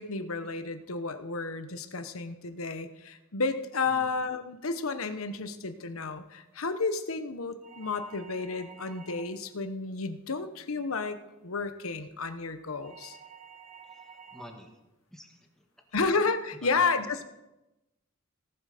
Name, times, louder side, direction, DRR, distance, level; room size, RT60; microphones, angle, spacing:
voice 1, 0.0-13.2 15.9-17.2, left 4 dB, 90° left, 9 dB, 1.0 m, -32 dB
sound 1, 7.6-9.5 12.8-14.6, right 6 dB, 35° right, 1.4 m, -50 dB
voice 2, 14.3-14.8 15.1-15.6 16.0-16.1 16.6-16.8, equal, ahead, 2 dB, 1.5 m, -48 dB
18.0 x 7.6 x 5.1 m, 0.97 s
head